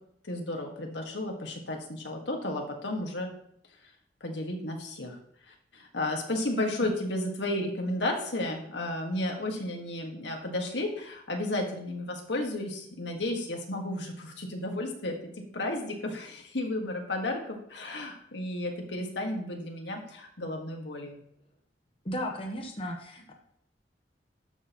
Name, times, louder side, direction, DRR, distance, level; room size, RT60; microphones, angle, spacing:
voice 1, 0.3-3.3 4.2-5.2 5.5-15.2 15.5-21.2, left 1 dB, 85° left, 2 dB, 1.7 m, -33 dB
voice 2, 22.0-23.3, equal, 30° left, 1 dB, 1.1 m, -35 dB
12.5 x 6.5 x 3.1 m, 0.70 s
head